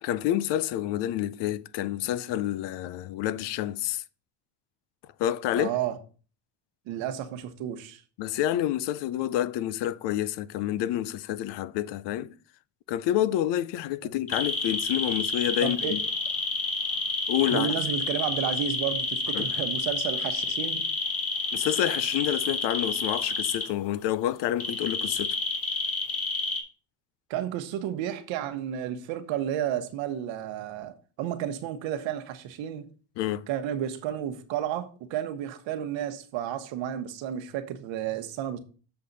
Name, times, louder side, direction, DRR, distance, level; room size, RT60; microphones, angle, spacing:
voice 1, 0.0-4.0 5.2-5.7 8.2-12.3 12.9-16.0 17.3-17.7 19.3-19.4 21.5-25.3 33.2-33.5, left 12 dB, 65° left, 0.6 m, -28 dB
voice 2, 5.6-6.0 6.9-8.0 14.0-14.1 15.6-16.1 17.5-20.9 27.3-32.9 33.5-38.6, right 10 dB, 75° right, 1.2 m, -32 dB
sound 1, 14.3-23.6 24.6-26.6, left 4 dB, 30° left, 2.1 m, -29 dB
7.1 x 6.6 x 4.0 m
cardioid pair, 140°, 46 cm